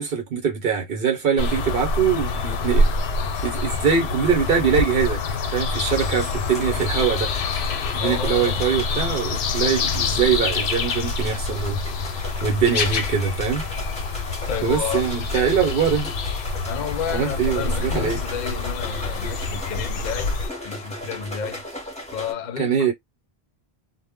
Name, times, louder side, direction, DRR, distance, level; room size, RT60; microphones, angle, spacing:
voice 1, 0.0-2.9 3.4-5.2 5.5-7.3 7.9-11.8 12.4-13.6 14.6-16.1 17.1-18.2 22.6-22.9, right 7 dB, 65° right, 0.9 m, -23 dB
sound 1, 1.4-20.5, left 3 dB, 85° left, 0.8 m, -26 dB
sound 2, 5.9-22.3, left 1 dB, 5° left, 0.8 m, -38 dB
voice 2, 8.0-8.6 10.0-10.4 14.5-15.0 16.7-20.4 20.6-21.6 22.1-22.9, left 7 dB, 55° left, 0.6 m, -31 dB
2.1 x 2.1 x 3.4 m
omnidirectional pair, 1.0 m